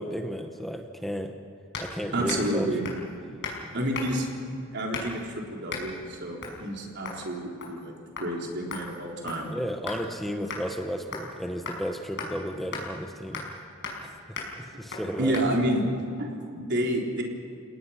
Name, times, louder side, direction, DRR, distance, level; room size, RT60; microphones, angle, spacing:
voice 1, 0.0-1.3 1.8-2.7 9.5-13.4 14.0-14.4 14.8-15.4, equal, ahead, 5 dB, 1.0 m, -33 dB
sound 1, 1.7-1.9 2.3-2.5 2.8-3.1 3.4-3.6 3.9-4.3 4.9-5.2 5.7-5.9 6.4-6.6 7.0-7.2 7.6-7.9 8.2-8.3 8.7-10.0 10.5-10.6 11.1-11.3 11.7-11.8 12.2-12.3 12.7-12.8 13.3-13.6 13.8-14.0 14.4-14.5 14.9-15.0 15.3-15.5, left 4 dB, 60° left, 5.6 m, -36 dB
voice 2, 2.1-2.8 3.7-4.3 4.7-9.5 15.2-15.9 16.2-17.2, right 1 dB, 55° right, 0 dB, 4.0 m, -29 dB
30.0 x 18.0 x 5.9 m, 2.6 s
head